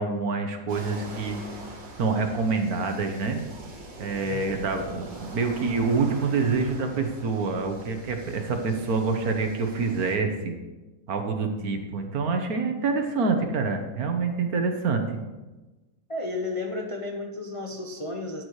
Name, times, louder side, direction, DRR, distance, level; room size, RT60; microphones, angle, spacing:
voice 1, 0.0-1.4 2.0-3.4 4.0-10.5 11.1-15.2, right 4 dB, 60° right, 5 dB, 1.3 m, -26 dB
sound 1, 0.7-10.2, right 2 dB, 75° right, 2.4 m, -43 dB
voice 2, 4.2-4.7 16.1-18.4, left 2 dB, 40° left, 1 dB, 0.4 m, -33 dB
14.0 x 8.0 x 3.2 m, 1.2 s
omnidirectional pair, 2.0 m